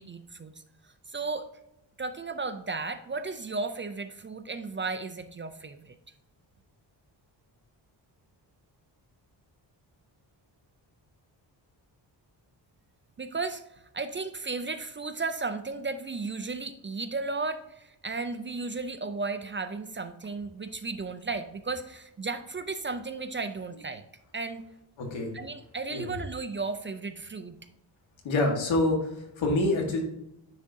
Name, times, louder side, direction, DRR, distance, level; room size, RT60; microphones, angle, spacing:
voice 1, 0.0-1.5 2.0-6.0 13.2-24.0 24.3-24.6 25.3-27.6, right 3 dB, 30° right, 9 dB, 0.4 m, -34 dB
voice 2, 25.0-25.3 25.9-26.0 28.2-30.0, left 2 dB, 90° left, 1 dB, 1.6 m, -26 dB
9.6 x 3.7 x 2.7 m, 0.84 s
cardioid pair, 95°, 45 cm